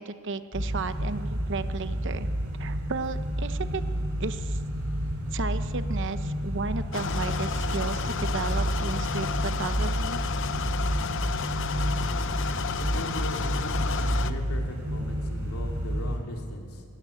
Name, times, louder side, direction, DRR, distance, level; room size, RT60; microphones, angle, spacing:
voice 1, 0.0-2.3 2.6-3.8 4.2-4.6 5.3-10.2, right 4 dB, 55° right, 11 dB, 0.9 m, -34 dB
sound 1, 0.5-16.2, equal, 90° right, 4.7 m, -30 dB
sound 2, 6.9-14.3, left 6 dB, 55° left, 0.7 m, -32 dB
voice 2, 12.8-16.8, left 1 dB, 80° left, 1 dB, 3.2 m, -38 dB
21.0 x 16.5 x 8.5 m, 2.2 s
head